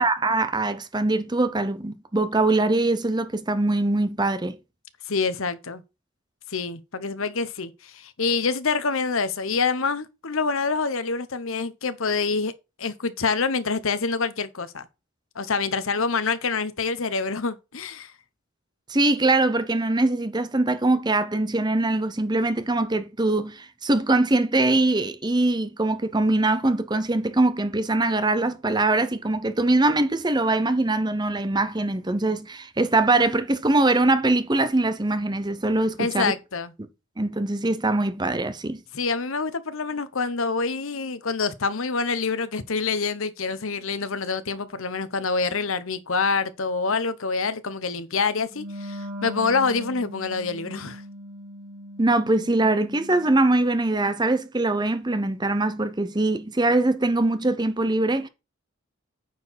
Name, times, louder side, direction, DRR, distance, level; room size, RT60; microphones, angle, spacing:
voice 1, 0.0-4.6 18.9-36.3 37.2-38.8 52.0-58.3, right 2 dB, 20° right, 0.7 m, -22 dB
voice 2, 5.1-5.8 6.5-12.5 12.8-14.8 15.3-18.1 36.0-36.7 38.9-51.0, left 4 dB, 70° left, 1.0 m, -26 dB
Wind instrument woodwind instrument, 48.5-53.6, equal, 80° right, 2.7 m, -39 dB
9.3 x 4.6 x 6.2 m
head